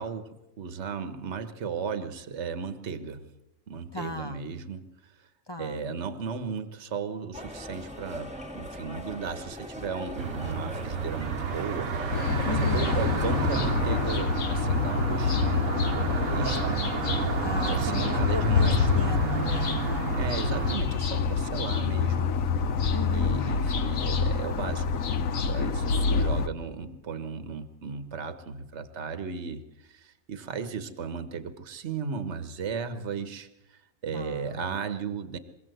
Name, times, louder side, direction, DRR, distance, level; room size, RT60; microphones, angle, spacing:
voice 1, 0.0-3.3 3.7-5.3 5.6-11.9 12.3-15.8 16.0-16.8 17.5-18.9 20.2-22.3 23.1-24.9 25.4-35.4, right 5 dB, 50° right, 9 dB, 1.5 m, -35 dB
voice 2, 3.9-4.5 5.5-5.9 12.4-13.0 17.4-20.1 22.9-23.6 26.1-26.3 34.1-34.8, left 2 dB, 20° left, 6 dB, 0.8 m, -37 dB
sound 1, 7.3-14.2, equal, 5° right, 1.7 m, -40 dB
sound 2, 10.2-20.8, right 6 dB, 70° right, 1.6 m, -31 dB
sound 3, 12.1-26.5, left 6 dB, 65° left, 1.3 m, -27 dB
23.5 x 16.5 x 7.9 m, 0.96 s
omnidirectional pair, 1.6 m